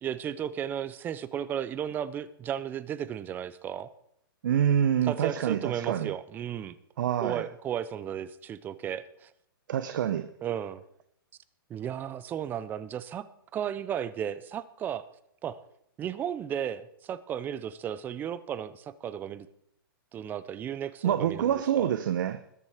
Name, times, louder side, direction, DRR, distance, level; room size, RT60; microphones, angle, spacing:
voice 1, 0.0-3.9 5.0-6.8 7.2-9.3 10.4-10.8 11.7-13.3 13.5-15.0 15.4-15.6 16.0-19.5 20.1-21.9, right 9 dB, 15° right, 0.6 m, -34 dB
voice 2, 4.4-6.1 7.0-7.4 9.7-10.3 21.0-22.4, right 10 dB, 60° right, 0.9 m, -26 dB
21.0 x 7.2 x 5.0 m
hypercardioid pair, 150°, 12 cm